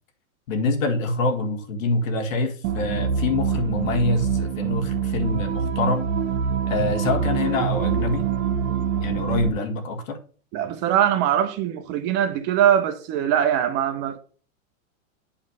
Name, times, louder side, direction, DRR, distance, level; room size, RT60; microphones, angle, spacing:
voice 1, 0.5-6.1 6.7-8.3 9.0-10.2, left 3 dB, 65° left, 1.7 m, -25 dB
sound 1, 2.6-9.5, right 7 dB, 55° right, 1.4 m, -25 dB
voice 2, 10.5-14.2, right 10 dB, 25° right, 0.5 m, -22 dB
8.8 x 3.2 x 6.5 m
hypercardioid pair, 135°, 42 cm